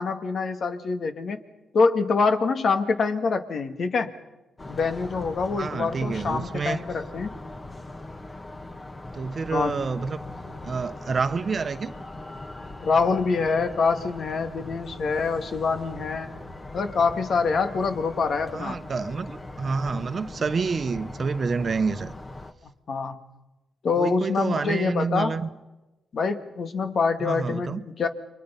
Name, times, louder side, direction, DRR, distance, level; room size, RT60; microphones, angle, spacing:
voice 1, 0.0-1.4 1.7-4.1 4.7-7.3 9.5-9.8 12.8-16.3 16.7-18.8 22.9-23.2 23.8-25.3 26.1-28.1, left 4 dB, 60° left, 2.0 m, -25 dB
sound 1, 4.6-22.5, left 2 dB, 30° left, 1.8 m, -40 dB
voice 2, 5.5-6.8 9.1-10.2 10.6-11.9 18.5-22.1 24.0-25.5 27.2-27.8, right 4 dB, 45° right, 1.0 m, -28 dB
29.5 x 24.0 x 5.7 m
cardioid pair, 70°, 0 cm